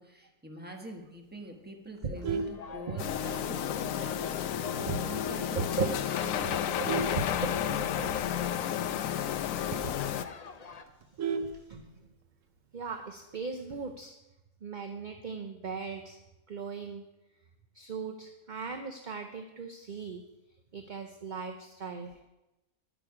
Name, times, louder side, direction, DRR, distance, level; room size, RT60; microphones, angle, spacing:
voice 1, 0.0-4.5 4.8-7.6, right 1 dB, 10° right, 2 dB, 1.3 m, -45 dB
Vehicle horn car horn honking, 1.9-3.4 3.9-4.1 4.5-4.6 5.0-5.1 5.4-5.7 6.3-8.1 8.5-8.6 8.9-9.0 9.4-9.5 9.8-9.9 10.2-12.2 13.4-13.9, right 5 dB, 75° right, 1.2 m, -36 dB
sound 1, 2.2-10.8, left 5 dB, 40° left, 0.6 m, -47 dB
sound 2, 3.0-10.3, left 10 dB, 85° left, 1.0 m, -32 dB
voice 2, 5.6-6.0 6.4-7.2 7.6-8.8 9.7-9.9 11.7-11.8 12.7-14.1 14.6-16.2 16.5-17.0 17.7-20.2 20.7-22.1, right 5 dB, 45° right, 5 dB, 0.7 m, -38 dB
10.5 x 9.0 x 4.9 m, 0.96 s
omnidirectional pair, 1.4 m